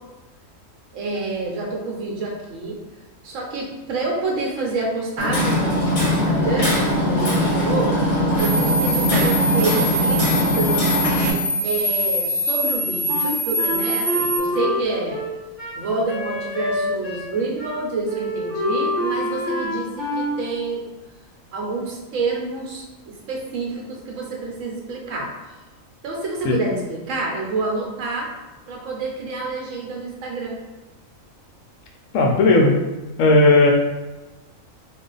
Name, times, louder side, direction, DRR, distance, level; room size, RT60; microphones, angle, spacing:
voice 1, 0.9-2.8 3.2-8.0 8.4-11.1 11.6-15.2 15.8-20.8 21.5-25.3 26.0-28.3 28.7-30.6, right 3 dB, 70° right, -1 dB, 1.1 m, -28 dB
Hammer, 5.2-11.3, equal, 40° left, 1.1 m, -20 dB
sound 1, 8.4-14.4, equal, 35° right, 0.7 m, -24 dB
Wind instrument woodwind instrument, 13.1-17.3 17.6-17.8 18.0-20.4, left 1 dB, ahead, 0.9 m, -26 dB
voice 2, 32.1-32.7 33.2-33.7, left 2 dB, 75° left, 0 dB, 0.9 m, -15 dB
2.5 x 2.4 x 3.8 m, 1.1 s
omnidirectional pair, 1.4 m